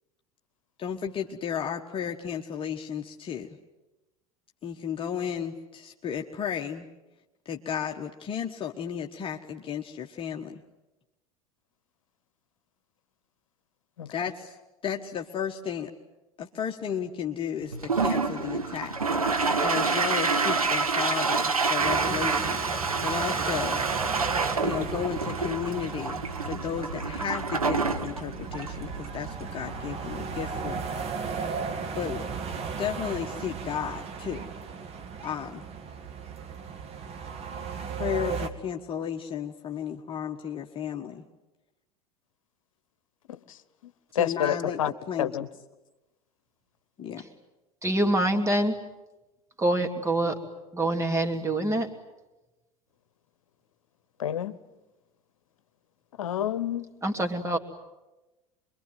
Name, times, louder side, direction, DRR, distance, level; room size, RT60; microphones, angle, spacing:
voice 1, 0.8-3.5 4.6-6.9 7.4-10.6 14.1-14.5 14.8-15.9 16.4-19.0 19.6-22.6 23.0-23.8 24.6-30.8 31.9-32.2 32.8-34.5 35.2-35.6 38.0-41.2 44.1-45.4 47.0-47.2, left 8 dB, 30° left, 2 dB, 1.4 m, -33 dB
Toilet flush, 17.7-30.8, right 4 dB, 80° right, 1.6 m, -28 dB
sound 1, 21.8-38.5, right 5 dB, 35° right, 2.3 m, -36 dB
voice 2, 44.1-44.9 45.2-45.5 54.2-54.6 56.2-56.8, left 10 dB, 65° left, 16 dB, 1.1 m, -28 dB
voice 3, 47.8-48.8 49.6-50.4 50.7-51.9 57.0-57.6, right 1 dB, 15° right, 5 dB, 2.9 m, -25 dB
26.0 x 23.0 x 9.4 m, 1.0 s
figure-of-eight pair, 75°, 18 cm